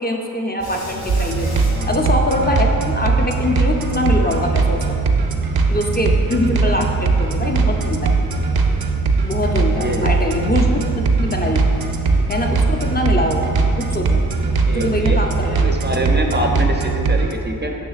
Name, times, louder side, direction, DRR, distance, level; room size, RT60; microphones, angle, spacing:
voice 1, 0.0-4.9 5.7-8.1 9.2-11.6 12.3-14.2 14.7-15.7, left 1 dB, 25° left, 1 dB, 0.5 m, -23 dB
sound 1, 0.6-15.9, equal, 90° left, 1.2 m, -35 dB
sound 2, 1.1-17.3, right 4 dB, 85° right, 0.5 m, -19 dB
voice 2, 1.4-1.9 6.6-6.8 9.7-10.2 13.1-13.2 14.5-15.2 15.5-17.8, right 1 dB, 30° right, 2 dB, 0.4 m, -25 dB
sound 3, 7.5-15.8, left 1 dB, 55° left, 1.0 m, -37 dB
7.1 x 5.6 x 2.4 m, 2.7 s
wide cardioid pair, 75°, 36 cm